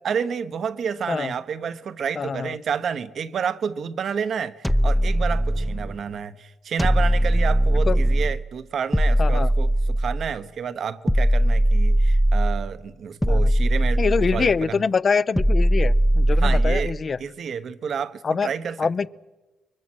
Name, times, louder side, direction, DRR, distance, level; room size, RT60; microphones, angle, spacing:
voice 1, 0.0-14.0 14.3-14.5 16.4-16.9 17.2-18.8, right 7 dB, 60° right, 1.2 m, -30 dB
voice 2, 2.1-2.6 7.7-8.0 9.2-9.5 13.3-13.5 14.0-17.2 18.2-18.5 18.8-19.1, left 5 dB, 40° left, 0.7 m, -24 dB
sound 1, 4.6-6.0 6.8-8.4 8.9-10.3 11.1-12.7 13.2-14.6 15.4-17.0, right 1 dB, 5° left, 0.8 m, -20 dB
28.0 x 23.5 x 6.3 m
cardioid pair, 90°, 0 cm